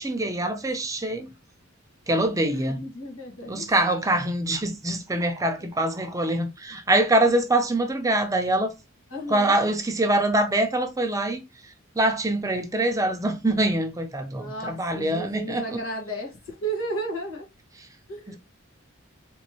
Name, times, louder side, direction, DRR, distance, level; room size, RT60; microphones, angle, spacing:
voice 1, 0.0-1.3 2.1-2.8 3.5-8.7 9.3-15.8 18.3-18.4, right 1 dB, 15° right, 0.6 m, -24 dB
voice 2, 2.5-3.7 9.1-9.5 14.4-17.5 18.1-18.4, right 1 dB, 80° left, 1.9 m, -34 dB
4.3 x 3.1 x 3.0 m
head